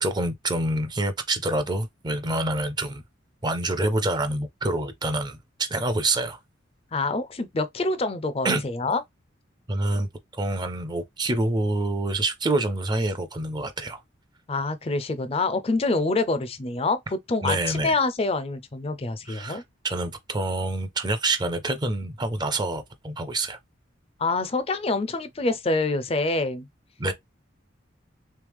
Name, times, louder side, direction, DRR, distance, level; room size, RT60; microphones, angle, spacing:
voice 1, 0.0-3.0 3.4-6.4 8.4-8.6 9.7-10.1 10.4-14.0 17.4-18.0 19.3-23.6 27.0-27.1, right 2 dB, 20° right, 0.5 m, -27 dB
voice 2, 6.9-9.0 14.5-19.6 24.2-26.7, left 3 dB, 30° left, 0.5 m, -26 dB
3.2 x 3.2 x 3.4 m
head